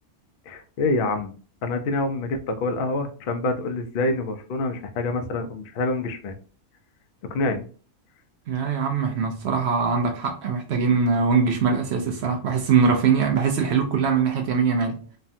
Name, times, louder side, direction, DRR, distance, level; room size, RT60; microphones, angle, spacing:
voice 1, 0.5-1.3 1.6-6.4 7.3-7.7, left 2 dB, 85° left, 0.4 m, -26 dB
voice 2, 8.5-15.0, right 5 dB, 65° right, 0.7 m, -22 dB
3.2 x 2.2 x 2.6 m
omnidirectional pair, 1.5 m